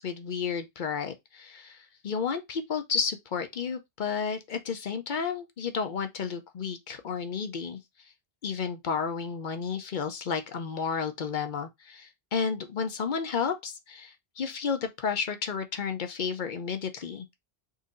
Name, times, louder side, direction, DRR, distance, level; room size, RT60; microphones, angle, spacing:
voice 1, 0.0-7.8 8.4-17.3, left 6 dB, 55° left, 0.8 m, -32 dB
4.0 x 2.7 x 3.7 m
omnidirectional pair, 1.0 m